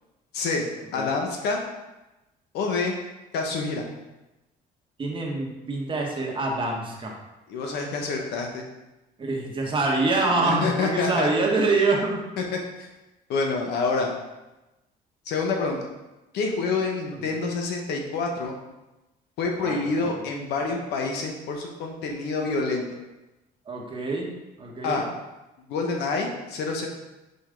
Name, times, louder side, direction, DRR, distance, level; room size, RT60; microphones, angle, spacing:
voice 1, 0.3-0.6 0.9-1.6 2.5-2.9 3.3-3.8 7.5-8.6 10.3-11.3 12.8-12.9 13.3-14.1 15.3-15.9 16.3-18.5 19.4-22.8 24.8-25.0 25.7-26.9, left 4 dB, 80° left, 2 dB, 1.2 m, -27 dB
voice 2, 5.0-7.2 9.2-12.2 17.1-17.4 19.6-20.2 23.7-24.3 24.6-25.0, right 3 dB, 30° right, -1 dB, 1.4 m, -26 dB
5.3 x 5.1 x 3.8 m, 1.0 s
cardioid pair, 110°, 17 cm